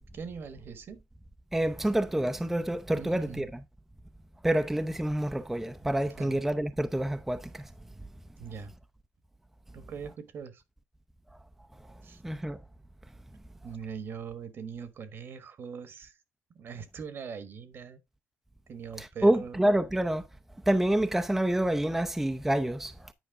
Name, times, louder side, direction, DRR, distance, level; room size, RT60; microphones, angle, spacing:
voice 1, 0.1-1.0 3.0-3.5 6.2-6.4 8.4-8.7 9.7-10.6 12.0-12.2 13.6-16.1 16.5-18.0 18.7-19.7, right 6 dB, 55° right, 1.3 m, -41 dB
voice 2, 1.5-3.5 4.4-7.7 12.2-12.6 19.0-20.3 20.7-23.1, right 1 dB, 5° right, 0.5 m, -27 dB
9.5 x 4.8 x 3.5 m
cardioid pair, 105°, 5 cm